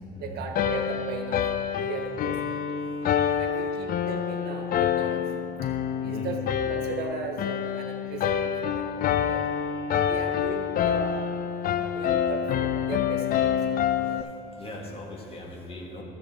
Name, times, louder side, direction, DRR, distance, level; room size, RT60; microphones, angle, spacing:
voice 1, 0.2-2.6 3.4-5.3 5.6-5.7 6.0-8.9 9.3-9.6 10.0-11.3 11.7-13.7 14.0-14.3, right 5 dB, 70° right, 3 dB, 1.3 m, -37 dB
sound 1, 0.6-14.2, left 8 dB, 60° left, 0.4 m, -27 dB
voice 2, 14.6-16.0, left 1 dB, 35° left, 0 dB, 1.7 m, -39 dB
13.0 x 7.4 x 4.1 m, 2.7 s
cardioid pair, 110°, 17 cm